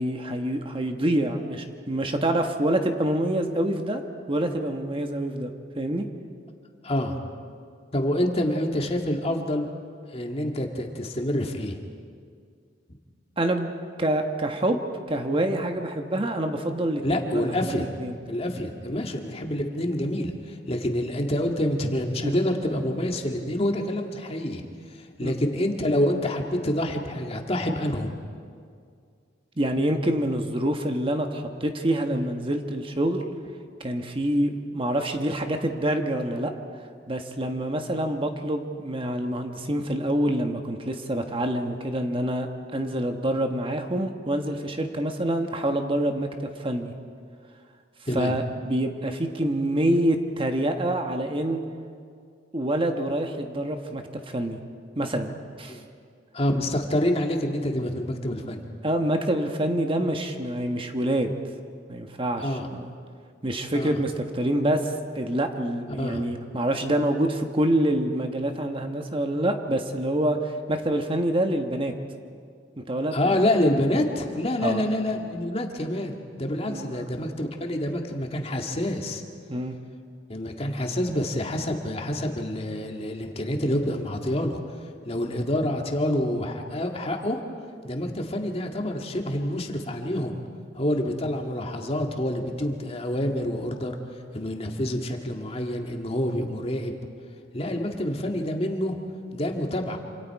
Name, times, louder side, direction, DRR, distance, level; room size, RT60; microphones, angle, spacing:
voice 1, 0.0-4.0 4.3-6.1 13.4-13.7 14.0-14.8 15.1-18.2 22.2-22.3 25.2-25.4 29.6-33.2 33.8-36.5 37.1-46.9 48.1-51.6 52.5-54.6 54.9-55.8 58.8-61.3 61.9-62.9 63.4-71.9 72.8-73.4 74.6-74.8 76.7-77.1 79.5-79.8, right 1 dB, 30° right, 5 dB, 1.3 m, -26 dB
voice 2, 6.8-7.2 7.9-9.7 10.1-11.8 17.0-17.8 18.3-24.6 24.9-28.1 48.1-48.3 55.7-55.8 56.3-58.6 62.4-62.7 63.7-64.0 66.0-66.3 73.1-79.2 80.3-84.6 85.0-87.4 87.8-90.4 90.7-94.0 94.3-96.9 97.5-99.0 99.3-100.0, left 1 dB, 35° left, 2 dB, 2.0 m, -27 dB
27.0 x 27.0 x 4.8 m, 2.2 s
head